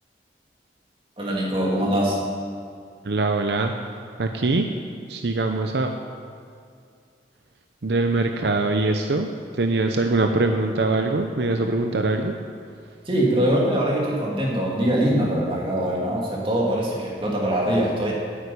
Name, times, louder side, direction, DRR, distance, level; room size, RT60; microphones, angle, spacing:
voice 1, 1.2-2.2 13.1-18.1, right 1 dB, 30° right, -3 dB, 2.4 m, -23 dB
voice 2, 3.0-3.7 4.2-4.7 5.1-5.9 7.8-12.4, right 2 dB, 70° right, 5 dB, 0.7 m, -23 dB
9.7 x 8.5 x 8.4 m, 2.3 s
head